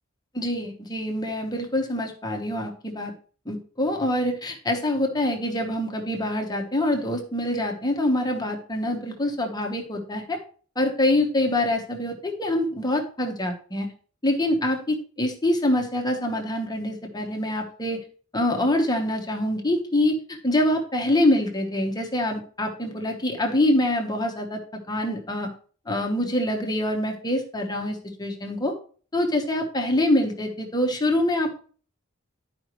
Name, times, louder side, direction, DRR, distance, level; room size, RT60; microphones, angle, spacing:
voice 1, 0.3-3.1 3.5-10.4 10.8-13.9 14.2-18.0 18.3-24.6 24.9-25.5 25.9-28.7 29.1-31.6, left 1 dB, 20° left, 3 dB, 1.1 m, -25 dB
11.5 x 5.0 x 3.1 m, 0.42 s
head